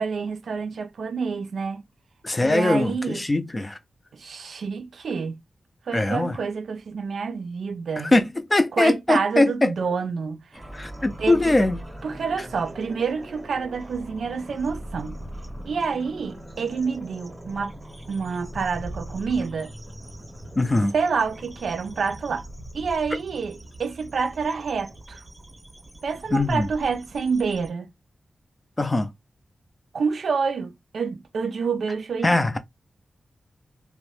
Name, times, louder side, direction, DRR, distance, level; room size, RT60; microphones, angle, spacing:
voice 1, 0.0-1.8 2.4-3.2 4.1-5.4 5.9-8.1 8.8-10.4 11.2-11.5 12.0-15.2 15.6-17.7 18.1-19.7 20.9-22.4 22.7-25.2 26.0-27.9 29.9-32.6, right 5 dB, 80° right, 0.5 m, -28 dB
voice 2, 2.2-3.8 5.9-6.4 8.0-9.7 10.7-11.8 12.4-12.5 20.6-20.9 26.3-26.7 28.8-29.1 32.2-32.6, left 2 dB, 20° left, 0.4 m, -21 dB
sound 1, 10.5-27.7, right 1 dB, 10° right, 0.8 m, -41 dB
2.6 x 2.1 x 3.1 m
wide cardioid pair, 160°, 0 cm